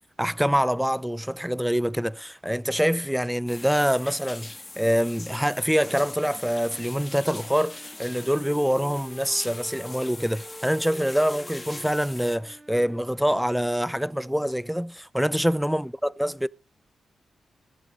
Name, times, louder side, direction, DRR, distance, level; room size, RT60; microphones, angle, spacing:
voice 1, 0.2-16.5, equal, 5° right, 0.5 m, -25 dB
sound 1, 3.5-12.4, left 2 dB, 25° left, 1.8 m, -42 dB
Wind instrument woodwind instrument, 6.4-14.8, right 1 dB, 20° right, 1.4 m, -47 dB
16.0 x 8.2 x 5.0 m
cardioid pair, 65°, 0 cm